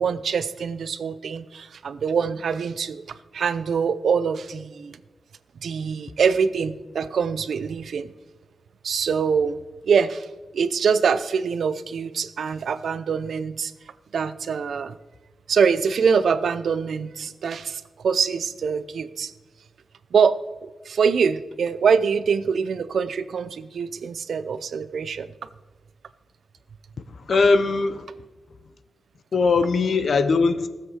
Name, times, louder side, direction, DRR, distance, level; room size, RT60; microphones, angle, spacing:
voice 1, 0.0-3.0 3.3-5.0 5.6-8.1 8.8-9.6 9.8-10.3 10.5-13.7 14.1-15.0 15.5-19.3 20.1-25.3, right 6 dB, 80° right, 0.6 m, -24 dB
voice 2, 27.1-28.0 29.3-30.7, left 4 dB, 60° left, 0.8 m, -20 dB
18.0 x 7.5 x 4.8 m
wide cardioid pair, 130°, 0 cm